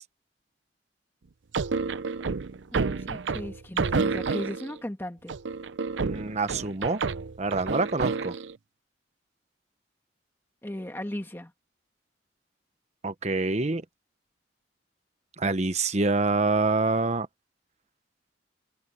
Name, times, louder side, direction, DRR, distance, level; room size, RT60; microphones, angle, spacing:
sound 1, 1.5-4.8 5.3-8.5, right 4 dB, 80° right, 0.6 m, -29 dB
voice 1, 2.7-5.3 10.6-11.5, left 1 dB, 15° left, 1.5 m, -36 dB
voice 2, 6.0-7.0 7.4-8.3 13.0-13.8 15.4-17.3, right 3 dB, 40° right, 1.1 m, -26 dB
head